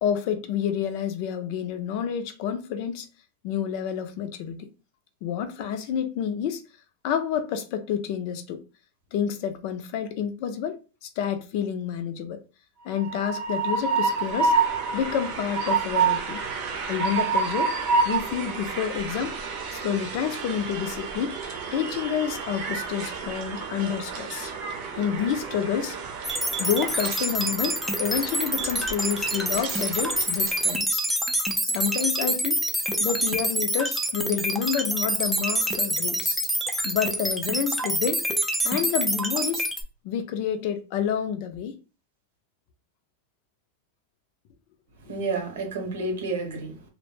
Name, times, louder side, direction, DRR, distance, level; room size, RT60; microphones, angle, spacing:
voice 1, 0.0-3.1 3.4-4.6 5.2-6.6 7.0-8.6 9.1-12.4 12.8-14.5 14.9-16.4 16.9-17.7 18.0-19.3 19.7-21.4 21.7-24.5 24.9-26.0 26.6-31.0 31.7-32.6 33.0-36.4 36.8-38.2 38.6-39.6 40.0-41.8, left 8 dB, 55° left, 0.4 m, -29 dB
Train, 12.9-30.7, right 5 dB, 50° right, 0.7 m, -29 dB
sound 1, 26.2-39.8, right 1 dB, ahead, 0.4 m, -26 dB
voice 2, 45.0-46.9, right 3 dB, 85° right, 0.8 m, -30 dB
2.1 x 2.0 x 3.1 m
supercardioid pair, 125°, 0 cm